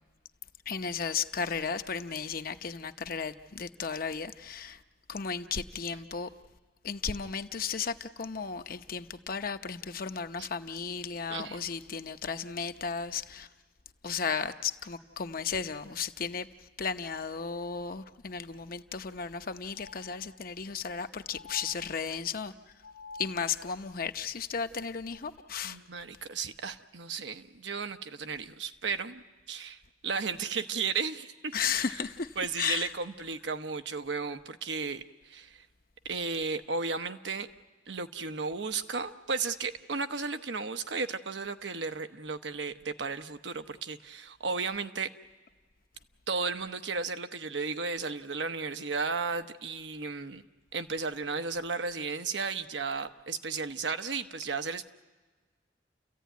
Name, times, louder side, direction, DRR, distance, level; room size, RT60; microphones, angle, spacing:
voice 1, 0.7-4.8 5.1-6.3 6.8-13.5 14.0-16.5 16.8-22.5 23.2-25.8 31.5-32.9, left 6 dB, 55° left, 0.8 m, -34 dB
voice 2, 11.3-11.6 25.6-31.8 32.4-35.7 36.1-37.5 37.9-45.1 46.3-50.4 50.7-54.9, right 4 dB, 85° right, 1.0 m, -34 dB
sound 1, 18.8-18.9 19.2-19.3 19.7-20.7 21.3-22.4 22.8-23.8 25.0-25.2, left 4 dB, 75° left, 1.3 m, -49 dB
30.0 x 15.0 x 9.3 m
head